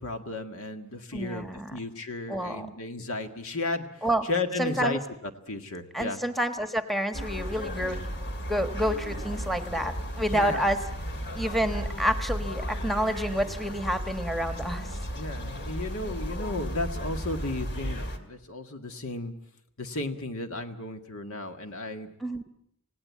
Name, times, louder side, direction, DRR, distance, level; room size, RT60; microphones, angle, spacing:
voice 1, 0.0-3.9 4.3-5.0 5.5-6.2 10.3-10.7 15.1-19.3 19.8-22.1, left 2 dB, 65° left, 7 dB, 1.9 m, -34 dB
voice 2, 1.1-1.8 2.3-2.7 4.0-4.3 4.6-5.0 5.9-8.0 8.5-10.8 11.3-14.9 22.2-22.4, equal, ahead, 8 dB, 1.3 m, -29 dB
sound 1, 7.1-18.2, equal, 50° left, 2.4 m, -34 dB
27.5 x 17.5 x 8.5 m, 0.73 s
head